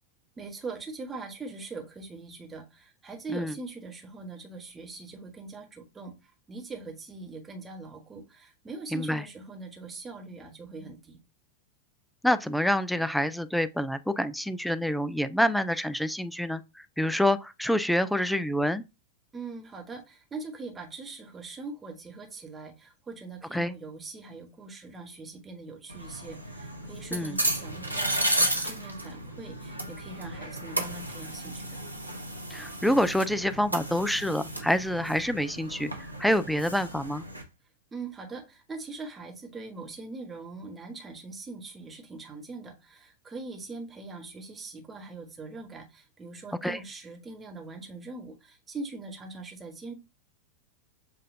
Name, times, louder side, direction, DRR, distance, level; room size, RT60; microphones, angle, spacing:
voice 1, 0.4-6.1 6.5-11.2 19.3-31.8 37.9-49.9, right 3 dB, 15° right, 1.2 m, -42 dB
voice 2, 8.9-9.2 12.2-18.8 23.5-23.7 27.1-27.4 32.5-35.9 36.2-37.2 46.6-46.8, equal, ahead, 0.4 m, -27 dB
sound 1, 25.9-37.4, right 1 dB, 85° right, 0.7 m, -33 dB
7.4 x 2.5 x 2.6 m
figure-of-eight pair, 90°, 0 cm